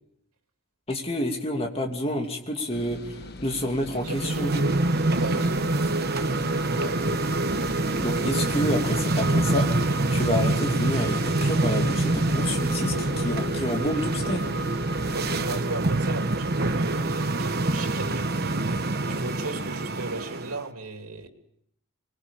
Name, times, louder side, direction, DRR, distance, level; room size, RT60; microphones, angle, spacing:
voice 1, 0.9-3.2 3.4-4.6 8.0-9.7 10.1-14.5, left 1 dB, 25° left, 2.6 m, -29 dB
sound 1, 2.7-15.6, left 1 dB, 45° left, 1.2 m, -41 dB
sound 2, 4.0-20.6, right 2 dB, 45° right, 1.2 m, -25 dB
voice 2, 4.0-4.6 5.2-5.8 6.8-7.2 15.1-18.7 19.1-21.3, right 3 dB, 90° right, 3.0 m, -36 dB
24.5 x 21.5 x 7.1 m
head